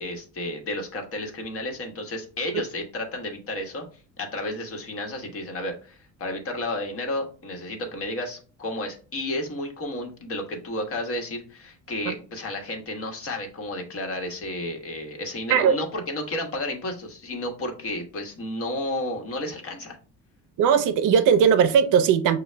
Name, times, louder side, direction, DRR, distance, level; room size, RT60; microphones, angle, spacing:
voice 1, 0.0-3.8 4.2-20.0, left 1 dB, 40° left, 1.1 m, -32 dB
voice 2, 20.6-22.4, right 7 dB, 65° right, 0.6 m, -18 dB
6.2 x 2.2 x 3.2 m
cardioid pair, 125°, 34 cm